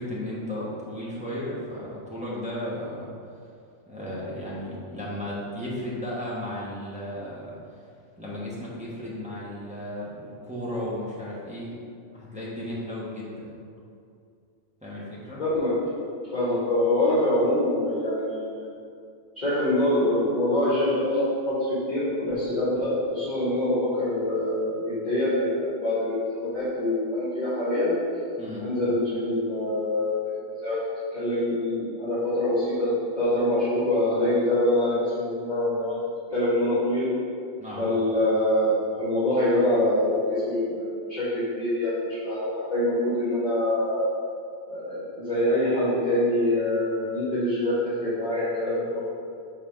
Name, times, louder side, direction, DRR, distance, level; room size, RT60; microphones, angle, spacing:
voice 1, 0.0-3.1 3.9-7.6 8.2-11.7 12.1-13.5 14.8-15.4 28.4-28.7 37.6-37.9, left 1 dB, 5° right, -7 dB, 1.2 m, -34 dB
voice 2, 15.4-15.7 16.3-18.7 19.4-27.9 28.6-30.3 30.6-30.8 31.1-32.9 33.2-36.0 36.3-37.1 37.8-38.7 39.0-44.0 44.7-47.7 48.0-49.0, left 1 dB, 35° left, -13 dB, 1.8 m, -25 dB
5.6 x 4.1 x 5.1 m, 2.4 s
omnidirectional pair, 1.2 m